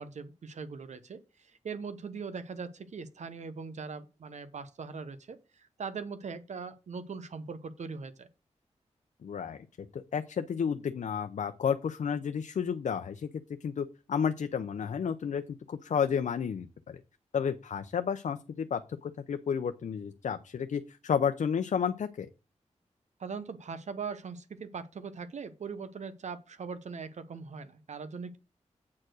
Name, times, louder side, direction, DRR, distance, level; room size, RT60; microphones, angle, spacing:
voice 1, 0.0-8.3 23.2-28.4, right 5 dB, 70° right, 12 dB, 0.9 m, -41 dB
voice 2, 9.2-9.7 9.9-13.3 13.6-17.0 17.3-22.3, left 7 dB, 80° left, 8 dB, 0.6 m, -31 dB
8.5 x 4.5 x 6.2 m, 0.31 s
wide cardioid pair, 120°, 12 cm